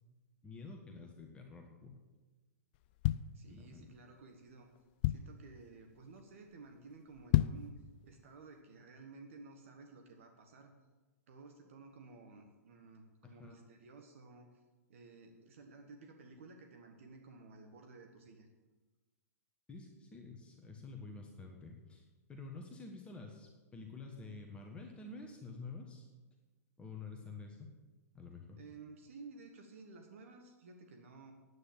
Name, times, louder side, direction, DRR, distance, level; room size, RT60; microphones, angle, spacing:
voice 1, 0.4-2.0 3.5-3.9 13.2-13.6 19.7-26.1 26.8-27.7 28.1-28.6, left 3 dB, 10° left, 2 dB, 1.3 m, -49 dB
sound 1, 2.7-4.0 4.5-4.6 4.8-5.5 6.0-6.2 6.5-6.6 7.1-7.8 8.2-8.3, left 15 dB, 40° left, 0.3 m, -32 dB
voice 2, 3.3-4.7 5.0-7.7 8.0-10.7 11.3-14.5 14.9-18.5 28.5-31.3, right 3 dB, 55° right, 4 dB, 1.4 m, -54 dB
9.7 x 9.0 x 7.4 m, 1.2 s
figure-of-eight pair, 110°, 9 cm